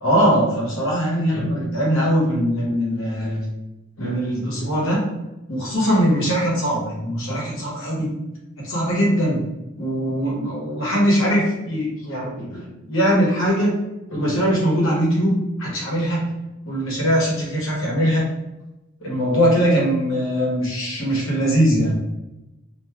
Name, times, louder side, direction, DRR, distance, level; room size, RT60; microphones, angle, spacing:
voice 1, 0.0-3.4 4.0-5.0 5.5-8.1 8.6-9.4 9.8-13.7 14.1-15.3 15.6-16.2 16.6-18.2 19.0-21.9, equal, 75° left, -4 dB, 1.0 m, -21 dB
2.9 x 2.7 x 2.3 m, 0.99 s
head